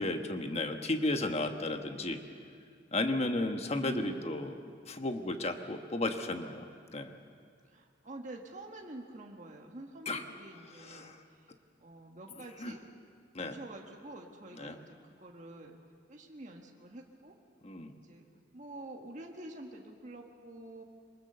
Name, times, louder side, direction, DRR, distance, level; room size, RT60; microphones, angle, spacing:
voice 1, 0.0-2.2 2.9-4.5 4.9-6.7 6.9-7.2 10.1-10.2 10.7-11.2 12.6-12.7 13.3-13.6 14.6-14.8 17.6-18.0, left 2 dB, 35° left, 6 dB, 1.3 m, -34 dB
voice 2, 3.8-4.5 7.7-11.5 11.8-12.8 13.4-15.8 16.1-17.3 17.9-18.3 18.5-20.8, right 1 dB, 40° right, 1 dB, 1.5 m, -47 dB
23.5 x 20.5 x 6.8 m, 2.2 s
head